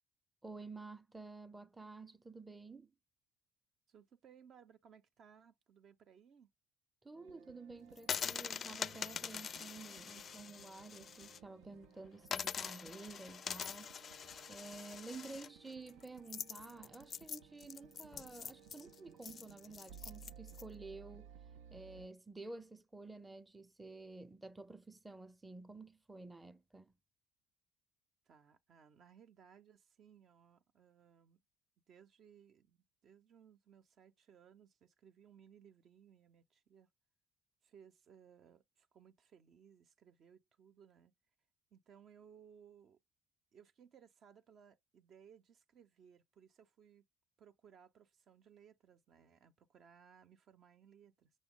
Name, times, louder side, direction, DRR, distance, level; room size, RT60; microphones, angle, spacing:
voice 1, 0.4-2.9 7.0-13.9 14.5-21.3 21.7-26.9, right 3 dB, 15° right, 0.6 m, -51 dB
voice 2, 3.9-6.5 28.3-31.4 31.9-36.9 37.6-41.2 41.7-43.0 43.5-47.0 47.4-51.3, right 8 dB, 55° right, 0.7 m, -63 dB
sound 1, 7.1-22.1, right 8 dB, 85° right, 0.5 m, -60 dB
sound 2, 8.0-11.4 11.7-11.8 12.3-20.6, left 7 dB, 45° left, 0.4 m, -44 dB
6.2 x 2.1 x 3.7 m
supercardioid pair, 80°, 0 cm